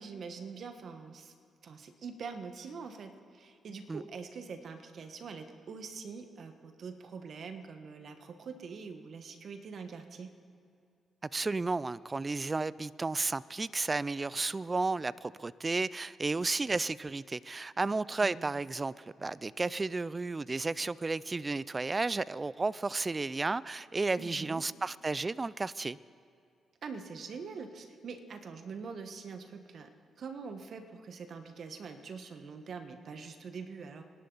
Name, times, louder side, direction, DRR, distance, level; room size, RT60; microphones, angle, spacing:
voice 1, 0.0-1.3 1.6-10.3 18.2-18.4 24.2-24.6 26.8-29.9 30.2-34.0, right 5 dB, 60° right, 7 dB, 1.4 m, -44 dB
voice 2, 11.2-26.0, right 3 dB, 30° right, 20 dB, 0.4 m, -33 dB
26.5 x 11.5 x 4.0 m, 2.4 s
supercardioid pair, 55°, 0 cm